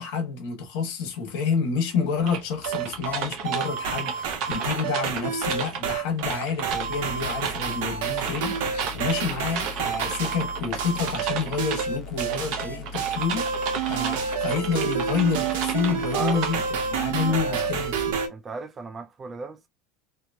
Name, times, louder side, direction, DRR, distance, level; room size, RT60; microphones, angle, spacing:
voice 1, 0.0-18.2, left 5 dB, 65° left, 1.4 m, -29 dB
sound 1, 2.3-16.6, right 7 dB, 50° right, 0.7 m, -34 dB
sound 2, 2.7-18.3, right 7 dB, 80° right, 1.0 m, -29 dB
sound 3, 6.7-18.1, left 3 dB, 35° left, 0.6 m, -41 dB
voice 2, 15.9-16.5 17.2-17.7 18.3-19.7, right 4 dB, 20° right, 0.3 m, -37 dB
3.0 x 2.2 x 2.7 m
supercardioid pair, 155°, 0 cm